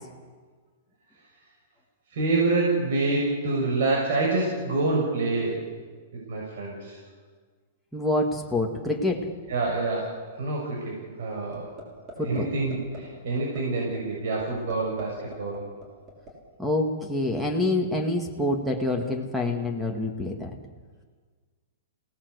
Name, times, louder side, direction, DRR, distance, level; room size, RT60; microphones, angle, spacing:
voice 1, 2.1-5.7 6.1-7.0 9.5-11.7 12.2-15.6, right 3 dB, 65° right, -2 dB, 6.4 m, -27 dB
voice 2, 7.9-9.3 12.2-12.5 16.6-20.5, left 2 dB, ahead, 3 dB, 2.2 m, -26 dB
sound 1, 11.5-11.8 12.1-12.4 12.7-13.0 13.4-13.6 13.9-14.0 14.4-15.0 15.3-16.3, right 1 dB, 20° right, 6.0 m, -41 dB
28.0 x 18.5 x 8.3 m, 1.5 s
hypercardioid pair, 165°, 0 cm